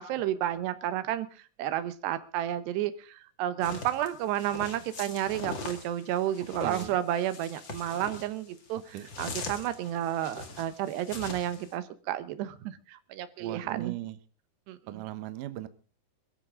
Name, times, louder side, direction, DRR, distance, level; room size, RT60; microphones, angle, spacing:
voice 1, 0.0-8.8 9.2-13.9 14.7-14.8, right 12 dB, 90° right, 3.2 m, -31 dB
sound 1, 3.6-11.7, left 4 dB, 40° left, 2.0 m, -42 dB
voice 2, 6.6-7.0 8.9-9.1 13.4-14.2 14.9-15.7, right 14 dB, 70° right, 2.2 m, -38 dB
22.5 x 14.0 x 3.7 m
omnidirectional pair, 4.7 m